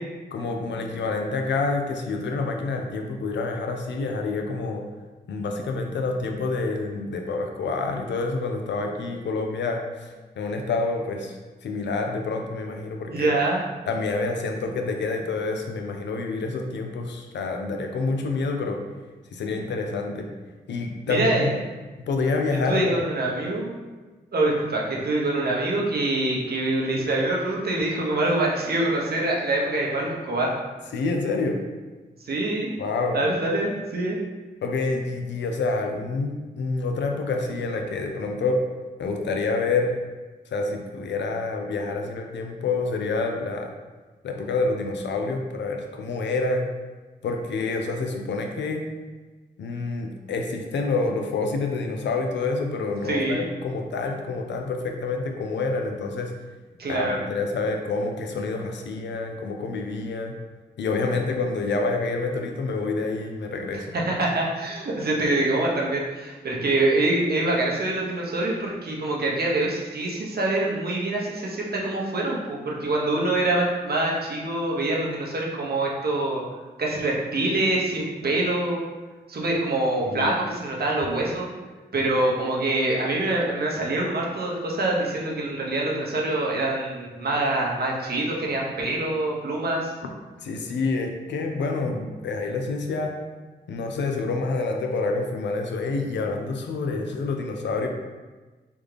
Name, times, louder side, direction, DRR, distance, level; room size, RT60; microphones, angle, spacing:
voice 1, 0.3-4.8 5.3-11.4 11.6-13.3 13.9-18.8 19.3-20.3 20.7-21.6 22.1-23.0 30.9-31.6 32.8-33.2 34.6-38.6 39.0-39.9 40.5-43.7 44.2-46.7 47.2-48.9 49.6-56.3 56.9-60.3 60.8-63.9 80.1-80.4 90.4-93.2 93.7-97.9, left 3 dB, 70° left, 3 dB, 0.5 m, -27 dB
voice 2, 13.1-13.6 21.1-21.5 22.5-23.7 24.3-30.6 32.2-32.7 33.1-34.2 53.0-53.4 56.8-57.2 63.9-76.4 76.8-78.8 79.3-81.5 81.9-89.9, right 2 dB, 55° right, -3 dB, 0.9 m, -25 dB
3.5 x 2.4 x 3.2 m, 1.3 s
supercardioid pair, 40°, 19 cm